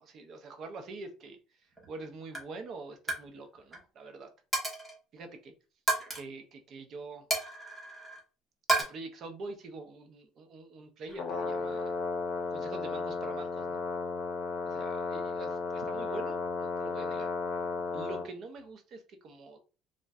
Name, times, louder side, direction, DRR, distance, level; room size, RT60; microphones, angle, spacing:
voice 1, 0.0-1.4 1.9-4.3 5.1-5.5 6.1-7.3 8.8-12.0 12.5-13.8 14.6-17.3 17.9-19.6, right 3 dB, 45° right, 0.6 m, -45 dB
Coin (dropping), 1.8-2.0 2.3-2.6 2.9-3.3 3.5-3.8 4.5-5.0 5.9-6.2 7.3-8.2 8.7-8.8, right 2 dB, 10° right, 1.0 m, -31 dB
Brass instrument, 11.1-18.3, left 4 dB, 40° left, 0.7 m, -34 dB
2.5 x 2.1 x 3.4 m
cardioid pair, 140°, 0 cm